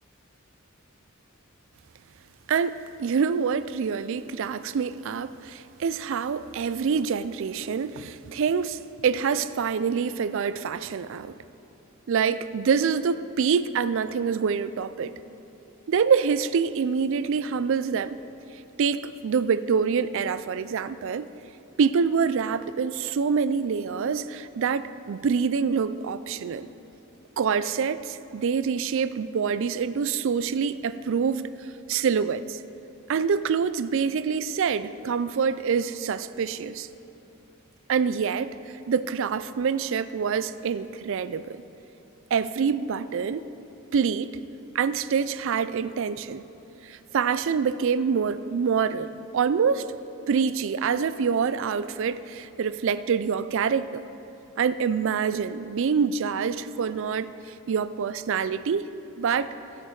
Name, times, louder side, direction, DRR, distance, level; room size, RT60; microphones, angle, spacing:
voice 1, 2.5-11.4 12.1-15.1 15.9-18.2 18.8-21.3 21.8-26.7 27.4-31.5 31.9-32.6 33.1-36.9 37.9-38.5 38.9-41.6 42.3-43.4 43.9-44.4 44.7-46.4 46.8-49.9 50.3-54.0 54.6-58.9 59.2-59.5, right 6 dB, 60° right, 14 dB, 0.4 m, -26 dB
17.5 x 6.5 x 3.9 m, 2.9 s
head